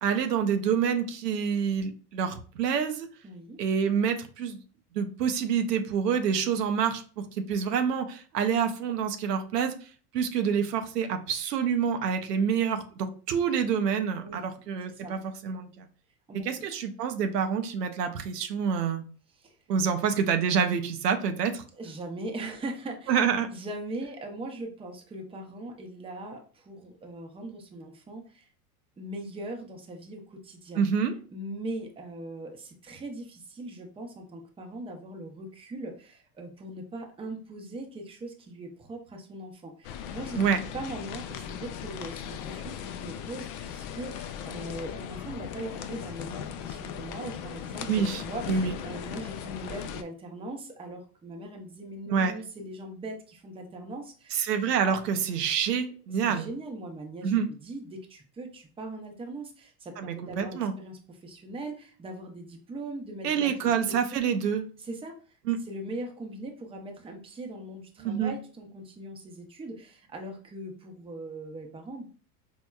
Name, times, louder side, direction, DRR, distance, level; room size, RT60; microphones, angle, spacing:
voice 1, 0.0-3.1 3.6-4.6 4.9-7.0 7.3-9.7 10.1-15.9 16.4-19.0 19.7-21.6 23.1-23.5 30.8-31.1 40.4-40.6 47.9-48.2 48.5-48.7 52.1-52.3 54.3-56.5 57.2-57.5 60.0-60.7 63.2-64.6 65.5-65.6 68.0-68.3, right 7 dB, 90° right, 6 dB, 0.6 m, -27 dB
voice 2, 3.2-3.6 14.2-14.4 14.8-15.2 16.3-16.7 19.4-19.6 21.7-23.2 23.5-28.5 29.0-30.8 31.3-40.4 40.7-54.4 54.8-55.0 56.2-64.3 64.8-65.4 65.7-72.1, right 1 dB, 10° right, 2 dB, 0.6 m, -40 dB
sound 1, 39.8-50.0, left 9 dB, 45° left, 0.4 m, -38 dB
4.4 x 2.1 x 2.2 m, 0.40 s
hypercardioid pair, 85°, 47 cm